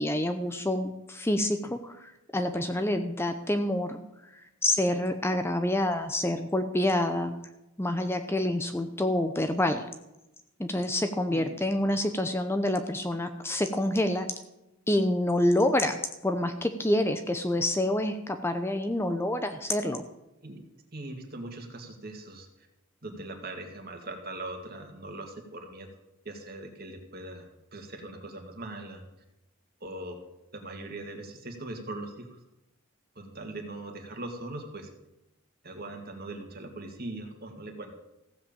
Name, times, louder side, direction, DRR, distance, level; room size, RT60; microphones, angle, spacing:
voice 1, 0.0-4.0 4.6-7.3 7.8-9.8 10.6-14.3 14.9-20.0, left 1 dB, 10° left, 7 dB, 0.7 m, -27 dB
voice 2, 20.9-22.5 23.0-25.9 26.3-29.0 29.8-30.2 30.5-32.3 33.2-34.9 35.6-37.9, right 2 dB, 45° right, 4 dB, 2.2 m, -40 dB
15.0 x 7.8 x 7.3 m, 0.92 s
head